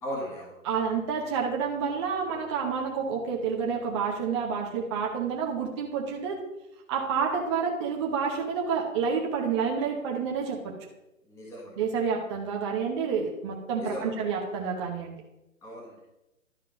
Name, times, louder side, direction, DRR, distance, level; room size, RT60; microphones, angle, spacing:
voice 1, 0.0-0.5 11.3-11.8 13.8-14.1 15.6-16.1, equal, 5° left, -4 dB, 1.2 m, -37 dB
voice 2, 0.6-6.4 6.9-10.7 11.8-15.2, right 6 dB, 20° right, -1 dB, 0.7 m, -29 dB
11.5 x 4.4 x 5.1 m, 0.95 s
hypercardioid pair, 145°, 41 cm